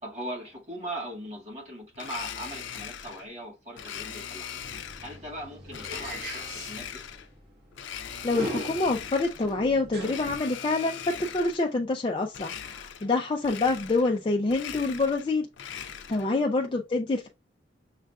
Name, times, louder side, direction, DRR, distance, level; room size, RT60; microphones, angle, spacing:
voice 1, 0.0-4.6 5.0-7.1 13.0-13.2 16.2-16.5, right 1 dB, 35° right, 1.7 m, -40 dB
Domestic sounds home sounds, 1.9-3.3 3.8-5.2 5.7-7.3 7.7-9.5 9.9-11.7 12.3-13.2 13.4-14.2 14.4-16.3, left 8 dB, 85° left, 0.5 m, -40 dB
sound 1, 4.6-10.4, equal, 55° right, 1.2 m, -40 dB
voice 2, 8.2-17.3, left 3 dB, 30° left, 0.4 m, -27 dB
6.4 x 2.4 x 2.3 m
head